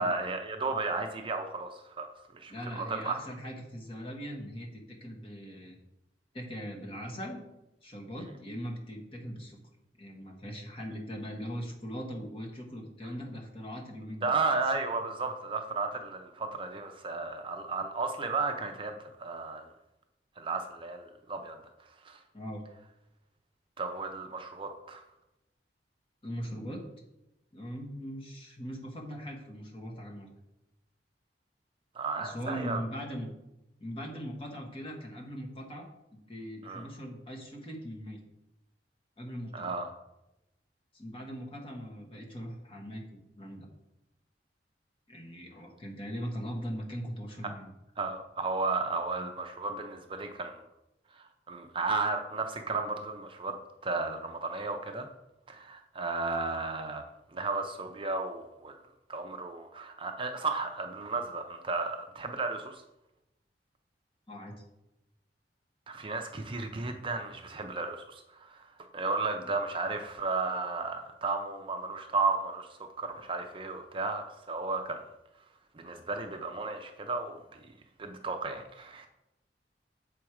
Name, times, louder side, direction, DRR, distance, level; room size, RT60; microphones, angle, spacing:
voice 1, 0.0-2.1 2.3-3.2 14.2-18.9 19.2-19.7 20.4-21.6 22.0-22.2 23.8-25.0 31.9-32.8 36.6-36.8 39.5-39.9 48.0-50.6 51.1-55.1 55.5-57.0 57.3-58.8 59.1-62.8 65.9-72.7 73.0-75.0 75.7-77.4 78.0-79.1, right 3 dB, 30° right, 5 dB, 0.5 m, -34 dB
voice 2, 2.5-5.8 6.3-7.4 7.8-9.6 10.0-14.4 22.3-22.6 26.2-26.8 27.5-30.3 32.2-33.3 33.8-38.2 39.2-39.7 40.9-43.7 45.1-47.7 64.3-64.5, equal, 30° left, 0 dB, 1.3 m, -40 dB
7.1 x 4.5 x 4.8 m, 0.92 s
head